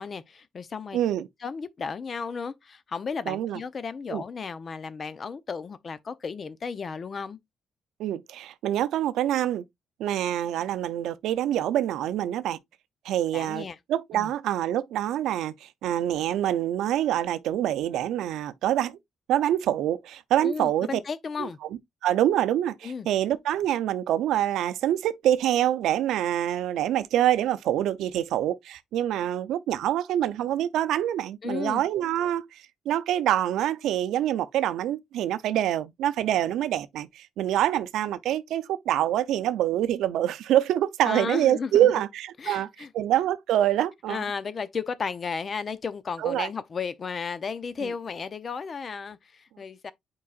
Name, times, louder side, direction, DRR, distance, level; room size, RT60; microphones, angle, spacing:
voice 1, 0.0-1.0 1.4-7.4 13.3-13.8 14.1-14.3 20.4-21.6 22.8-23.1 31.4-31.8 41.0-41.9 42.4-42.9 44.1-49.9, left 5 dB, 45° left, 0.7 m, -34 dB
voice 2, 0.9-1.3 3.3-3.6 4.1-4.2 8.0-9.6 10.0-12.6 13.0-19.0 19.3-21.0 21.4-21.5 22.0-42.7 42.9-44.2 46.2-46.5 47.8-47.9, right 12 dB, 85° right, 0.5 m, -26 dB
8.4 x 4.7 x 2.4 m
cardioid pair, 90°, 0 cm